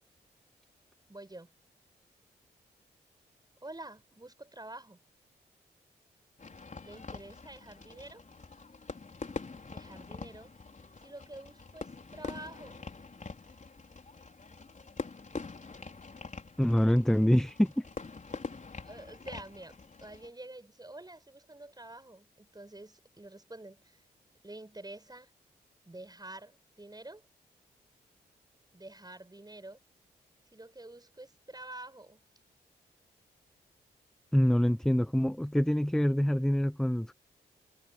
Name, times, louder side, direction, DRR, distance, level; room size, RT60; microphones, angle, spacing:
voice 1, 1.1-1.5 3.6-5.0 6.8-8.2 9.7-10.5 11.0-12.8 18.8-24.0 24.4-25.3 25.8-27.3 28.7-29.8 30.5-32.2, right 2 dB, 20° right, 8.0 m, -48 dB
Fireworks, 6.4-20.3, left 4 dB, 45° left, 4.7 m, -45 dB
voice 2, 16.6-17.8 34.3-37.1, equal, 5° left, 0.9 m, -25 dB
supercardioid pair, 40°, 18 cm